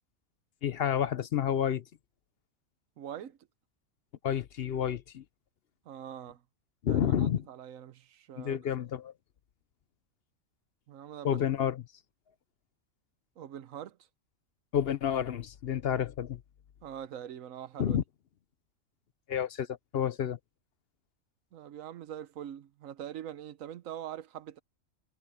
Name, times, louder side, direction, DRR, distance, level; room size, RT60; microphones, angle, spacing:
voice 1, 0.6-1.8 4.2-5.2 6.8-7.5 8.4-9.1 11.2-11.8 14.7-16.4 17.8-18.0 19.3-20.4, left 9 dB, 55° left, 0.8 m, -30 dB
voice 2, 3.0-3.4 5.8-6.4 6.9-8.6 10.9-11.4 13.4-14.0 16.8-18.0 21.5-24.6, right 10 dB, 80° right, 1.2 m, -43 dB
omnidirectional pair, 1.4 m